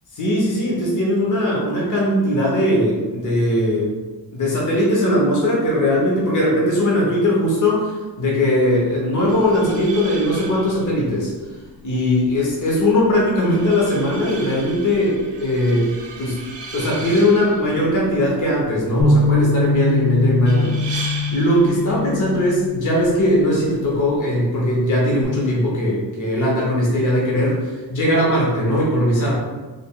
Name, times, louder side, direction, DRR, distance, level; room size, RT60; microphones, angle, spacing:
voice 1, 0.2-3.9 4.3-11.3 11.8-15.9 16.2-16.4 16.7-29.4, left 1 dB, 45° left, -4 dB, 0.9 m, -19 dB
sound 1, 9.3-24.2, right 4 dB, 80° right, 0.6 m, -38 dB
Bass guitar, 19.0-25.2, left 3 dB, 85° left, 0.9 m, -23 dB
3.8 x 3.3 x 2.3 m, 1.3 s
wide cardioid pair, 175°, 43 cm